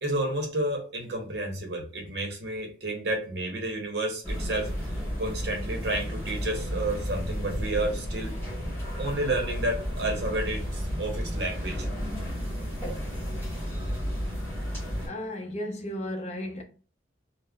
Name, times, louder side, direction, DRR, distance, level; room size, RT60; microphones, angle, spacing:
voice 1, 0.0-4.7 5.2-8.3 9.0-11.9 12.2-12.3, right 1 dB, 60° right, 0.8 m, -31 dB
sound 1, 4.2-15.1, equal, 10° left, 1.5 m, -32 dB
voice 2, 15.0-16.6, left 1 dB, 35° left, 0.5 m, -34 dB
3.5 x 2.0 x 2.2 m
head